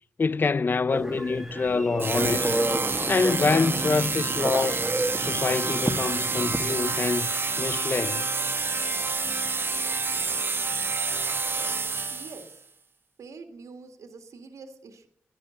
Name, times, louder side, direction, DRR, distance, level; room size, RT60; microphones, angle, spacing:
voice 1, 0.2-2.6 3.1-4.8 5.2-8.3, left 4 dB, 40° left, 0.4 m, -26 dB
Telephone, 0.9-7.0, right 1 dB, 5° right, 1.7 m, -31 dB
sound 1, 2.0-12.5, right 4 dB, 45° right, 1.1 m, -28 dB
voice 2, 12.1-12.6 13.2-15.1, right 4 dB, 75° right, 1.8 m, -45 dB
11.0 x 10.0 x 7.2 m
supercardioid pair, 40°, 5 cm